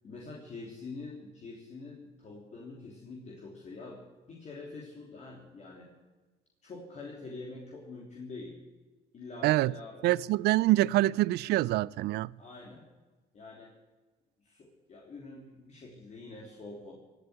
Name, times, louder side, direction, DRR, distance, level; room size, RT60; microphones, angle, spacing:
voice 1, 0.0-4.0 4.3-5.9 6.6-8.6 9.1-10.1 12.4-12.8 13.3-13.7 14.4-16.9, left 3 dB, 45° left, 3.2 m, -45 dB
voice 2, 10.0-12.3, right 17 dB, 75° right, 0.4 m, -25 dB
17.0 x 8.1 x 9.6 m
cardioid pair, 110°, 17 cm